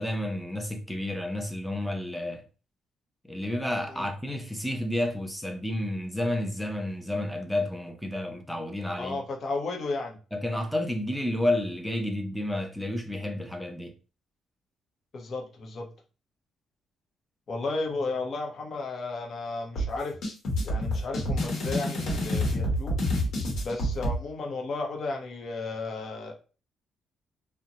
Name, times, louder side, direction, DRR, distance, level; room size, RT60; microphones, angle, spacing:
voice 1, 0.0-2.4 3.3-9.2 10.3-13.9, left 1 dB, 5° left, 0.6 m, -30 dB
voice 2, 9.0-10.2 15.1-15.9 17.5-20.1 20.6-23.0 23.6-26.3, left 3 dB, 55° left, 0.8 m, -33 dB
sound 1, 19.8-24.2, equal, 75° left, 1.1 m, -28 dB
2.5 x 2.2 x 2.9 m
cardioid pair, 90°, 0 cm